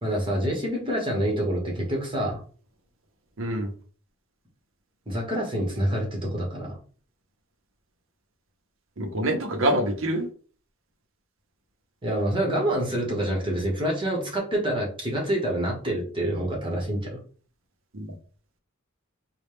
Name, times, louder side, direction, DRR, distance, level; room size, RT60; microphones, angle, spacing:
voice 1, 0.0-2.4 5.1-6.8 12.0-17.2, right 1 dB, 25° right, -1 dB, 1.3 m, -27 dB
voice 2, 3.4-3.7 9.0-10.3 17.9-18.1, right 1 dB, 75° right, 6 dB, 0.8 m, -25 dB
4.1 x 2.3 x 3.4 m, 0.41 s
head